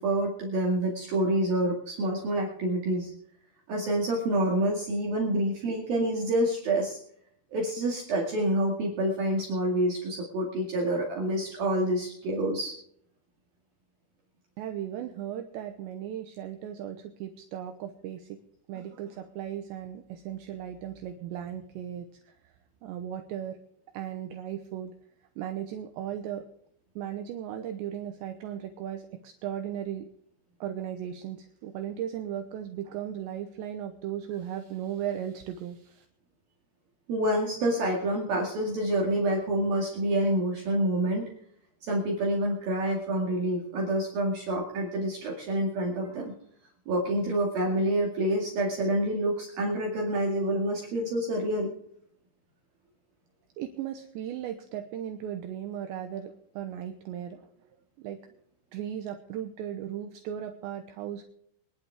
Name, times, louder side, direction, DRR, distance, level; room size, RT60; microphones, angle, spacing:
voice 1, 0.0-3.1 3.7-7.0 7.5-12.8 37.1-41.2 41.8-46.3 46.9-51.7, right 1 dB, 55° right, -1 dB, 3.5 m, -27 dB
voice 2, 14.6-18.4 18.7-22.5 22.8-23.6 23.9-24.9 25.4-26.5 27.0-30.1 30.6-36.1 53.6-57.5 58.0-58.4 58.7-61.2, right 10 dB, 75° right, 6 dB, 2.8 m, -36 dB
23.5 x 11.5 x 3.6 m, 0.68 s
omnidirectional pair, 5.9 m